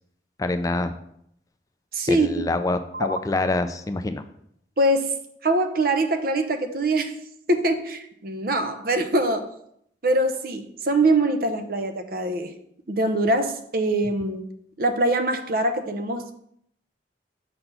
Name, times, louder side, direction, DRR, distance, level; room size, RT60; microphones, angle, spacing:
voice 1, 0.4-0.9 2.1-4.2, left 2 dB, 20° left, 9 dB, 0.3 m, -25 dB
voice 2, 1.9-2.4 2.9-3.1 4.8-7.2 7.5-9.5 10.0-12.5 12.9-14.4 14.8-16.4, right 1 dB, 55° right, 7 dB, 0.7 m, -23 dB
6.6 x 4.2 x 5.6 m, 0.71 s
head